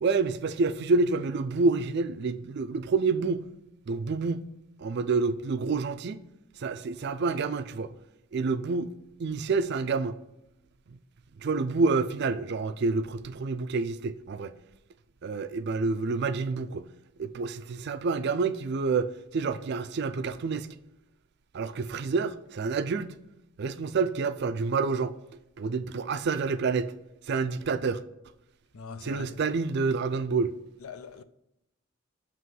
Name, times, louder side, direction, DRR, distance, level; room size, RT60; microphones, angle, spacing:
voice 1, 0.0-3.5 3.9-4.5 4.8-6.2 6.6-7.9 8.3-8.9 9.2-10.1 11.4-14.5 15.2-16.9 17.2-20.7 21.5-23.2 23.6-25.1 25.6-26.9 27.3-28.0 29.0-30.6, right 4 dB, 50° right, 0.4 m, -28 dB
voice 2, 28.7-29.4 30.8-31.2, left 5 dB, 80° left, 0.5 m, -42 dB
7.5 x 3.0 x 5.9 m
head